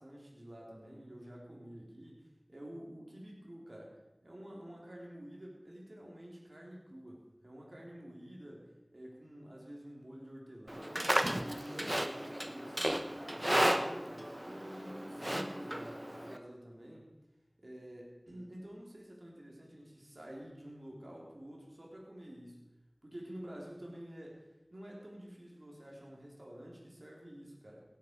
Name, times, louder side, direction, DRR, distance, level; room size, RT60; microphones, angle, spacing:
voice 1, 0.0-2.2 2.5-3.9 4.2-11.1 11.4-17.1 17.6-22.6 23.0-24.4 24.7-27.8, equal, 65° right, -2 dB, 3.7 m, -49 dB
Livestock farm animals working animals, 10.7-16.4, equal, 25° right, 1.0 m, -34 dB
16.5 x 10.0 x 4.7 m, 1.0 s
wide cardioid pair, 40°, 0 cm